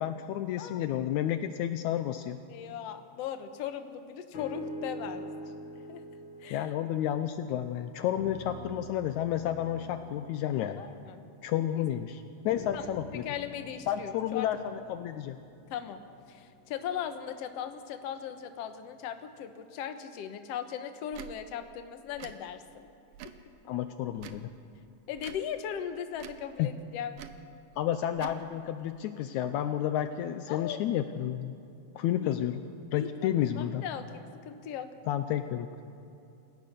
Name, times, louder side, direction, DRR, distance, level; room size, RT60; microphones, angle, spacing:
voice 1, 0.0-2.4 6.5-10.8 11.4-13.3 13.9-15.4 23.6-24.5 26.6-26.7 27.8-31.5 31.9-32.6 32.9-33.8 35.1-35.7, left 11 dB, 85° left, 9 dB, 1.7 m, -31 dB
voice 2, 2.5-5.3 5.9-6.0 6.4-6.7 10.8-11.2 11.7-11.8 12.7-12.9 13.2-14.5 15.7-16.0 16.3-22.9 25.1-27.1 30.5-30.8 32.2-32.4 33.0-34.9, left 9 dB, 65° left, 8 dB, 1.7 m, -38 dB
sound 1, 4.3-7.7 8.1-11.8 12.5-16.7 17.3-17.4, equal, 45° left, 1.7 m, -45 dB
Tick / Tick-tock, 21.1-21.3 22.1-22.4 23.1-23.4 24.2-24.5 25.2-25.4 26.1-26.4 27.1-27.4 28.1-28.4, right 10 dB, 70° right, 2.4 m, -46 dB
28.5 x 17.0 x 6.7 m, 2.7 s
omnidirectional pair, 4.2 m